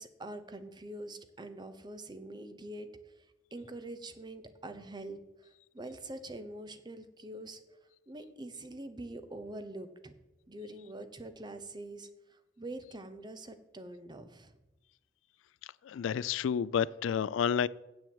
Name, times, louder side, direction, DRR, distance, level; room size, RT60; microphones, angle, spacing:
voice 1, 0.0-7.8 8.1-10.1 10.5-14.5, right 1 dB, 25° right, 9 dB, 0.8 m, -45 dB
voice 2, 15.8-17.7, left 7 dB, 80° left, 20 dB, 0.3 m, -30 dB
7.7 x 7.2 x 7.8 m, 0.99 s
head